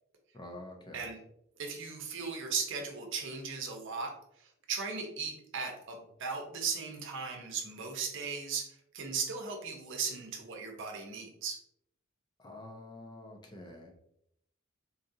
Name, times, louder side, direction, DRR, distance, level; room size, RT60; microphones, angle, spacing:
voice 1, 0.3-1.1 12.4-13.9, left 1 dB, 20° left, 2 dB, 0.6 m, -47 dB
voice 2, 1.6-8.7 8.9-11.6, right 5 dB, 65° right, 2 dB, 0.8 m, -37 dB
4.0 x 2.4 x 2.7 m, 0.74 s
head